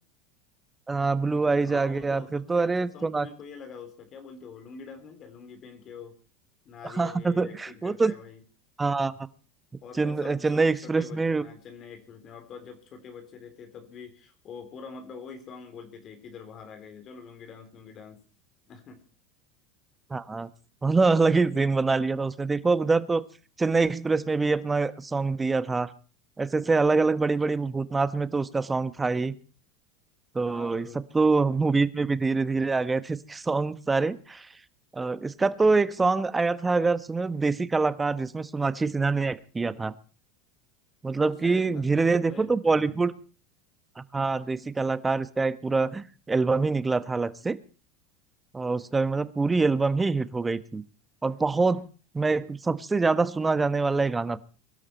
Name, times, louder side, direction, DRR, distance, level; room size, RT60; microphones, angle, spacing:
voice 1, 0.9-3.3 7.0-8.1 8.8-9.1 10.0-11.4 20.1-20.5 20.8-23.2 23.6-25.9 26.4-29.3 30.3-30.9 31.1-34.5 34.9-39.9 41.0-43.1 44.0-47.6 48.5-50.8 51.2-51.9 52.1-54.4, right 3 dB, 15° right, 15 dB, 1.3 m, -25 dB
voice 2, 1.6-6.2 6.7-8.4 9.8-18.2 18.7-19.0 30.5-31.0 41.1-43.0, left 6 dB, 45° left, 7 dB, 3.5 m, -45 dB
23.5 x 12.5 x 4.5 m, 0.38 s
hypercardioid pair, 85°, 0 cm